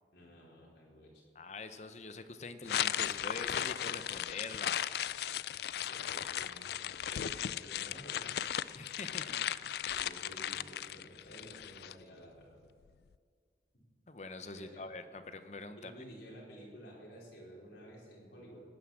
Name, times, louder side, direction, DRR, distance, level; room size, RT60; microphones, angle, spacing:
voice 1, 0.1-1.2 5.9-6.7 7.0-8.4 9.9-12.5 14.5-14.8 15.8-18.6, equal, 90° left, -4 dB, 4.6 m, -52 dB
voice 2, 1.3-4.9 8.7-9.5 14.1-16.0, left 3 dB, 40° left, 10 dB, 0.8 m, -45 dB
sound 1, 2.7-11.9, left 10 dB, 65° left, 0.3 m, -36 dB
17.5 x 9.4 x 7.4 m, 2.1 s
head